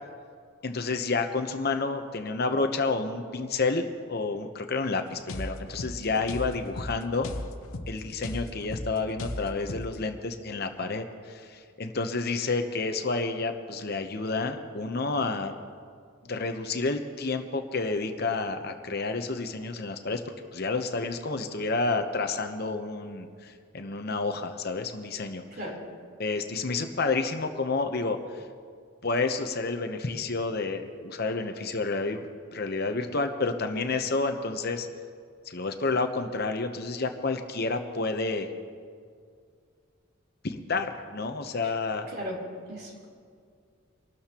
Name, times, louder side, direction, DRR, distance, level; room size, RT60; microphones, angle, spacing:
voice 1, 0.6-7.3 7.9-15.5 16.3-20.2 20.5-25.4 26.2-28.2 29.0-34.9 35.5-38.5 40.4-42.1, left 3 dB, 50° left, 6 dB, 0.8 m, -30 dB
sound 1, 5.3-10.0, left 1 dB, 90° left, 0.9 m, -37 dB
voice 2, 25.5-25.8 42.1-42.4 42.7-43.0, equal, 50° right, -2 dB, 3.6 m, -36 dB
25.0 x 12.5 x 3.0 m, 2.2 s
head